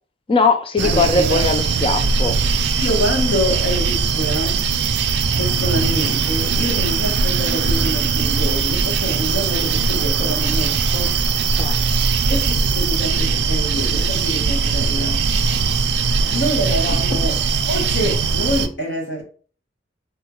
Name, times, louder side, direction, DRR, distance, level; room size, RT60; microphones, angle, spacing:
voice 1, 0.3-2.4 11.6-11.8 16.9-17.2, left 3 dB, 30° left, 0.4 m, -20 dB
voice 2, 0.8-1.5 2.8-4.6 5.4-11.1 12.3-15.2 16.3-17.4 17.7-19.2, equal, 65° left, 1.0 m, -26 dB
sound 1, 0.8-18.7, right 5 dB, 65° right, 0.4 m, -20 dB
3.5 x 2.3 x 2.9 m
head